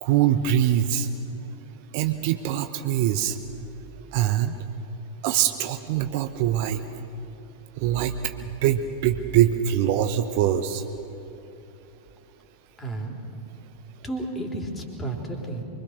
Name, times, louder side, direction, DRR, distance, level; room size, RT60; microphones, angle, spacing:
voice 1, 0.0-1.1 1.9-3.4 4.1-4.5 5.2-6.8 7.8-10.8, right 11 dB, 45° right, 8 dB, 0.9 m, -23 dB
voice 2, 12.8-13.2 14.0-15.6, right 2 dB, 15° left, 2 dB, 3.6 m, -32 dB
24.5 x 23.5 x 6.6 m, 3.0 s
figure-of-eight pair, 90°, 0 cm